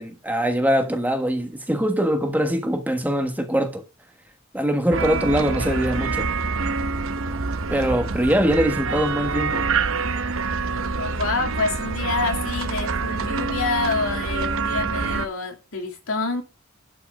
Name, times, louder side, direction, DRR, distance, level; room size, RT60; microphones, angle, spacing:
voice 1, 0.0-3.8 4.5-6.3 7.7-9.7, equal, 10° right, 1.4 m, -22 dB
sound 1, 4.9-15.3, right 4 dB, 75° right, 0.9 m, -26 dB
voice 2, 11.0-16.4, left 3 dB, 80° left, 2.7 m, -27 dB
11.5 x 5.7 x 5.4 m
head